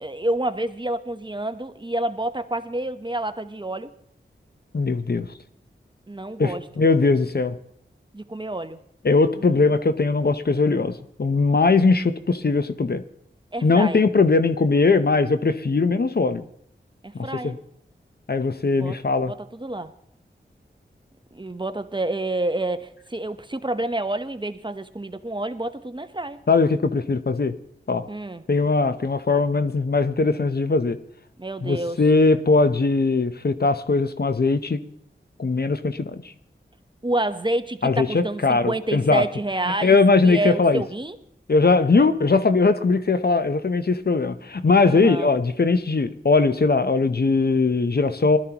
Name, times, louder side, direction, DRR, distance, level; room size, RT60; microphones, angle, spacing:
voice 1, 0.0-3.9 6.1-6.7 8.1-8.8 9.3-9.6 13.5-14.0 17.0-17.6 18.7-19.0 19.3-19.9 21.3-26.4 28.1-28.4 31.4-32.0 37.0-40.0 40.2-41.2 44.9-45.3, right 1 dB, 25° right, 10 dB, 0.9 m, -28 dB
voice 2, 4.7-5.3 6.4-7.6 9.0-13.0 13.6-16.4 17.1-17.5 18.3-19.3 26.5-27.5 27.9-28.0 28.5-31.0 31.6-34.8 35.4-36.2 37.8-39.2 39.8-40.8 41.5-48.4, left 3 dB, 55° left, 11 dB, 0.8 m, -20 dB
20.0 x 12.5 x 3.0 m, 0.67 s
cardioid pair, 40°, 20 cm